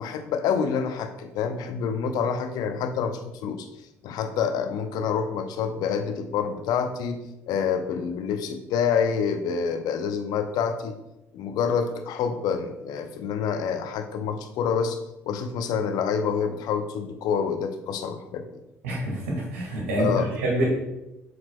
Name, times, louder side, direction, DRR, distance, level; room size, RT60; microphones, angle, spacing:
voice 1, 0.0-3.7 4.0-7.2 7.5-11.0 11.3-15.0 15.3-18.5 20.0-20.4, left 6 dB, 60° left, 8 dB, 0.6 m, -27 dB
voice 2, 18.8-20.7, right 1 dB, 75° right, -2 dB, 1.8 m, -26 dB
7.2 x 6.1 x 2.2 m, 0.93 s
figure-of-eight pair, 50°, 8 cm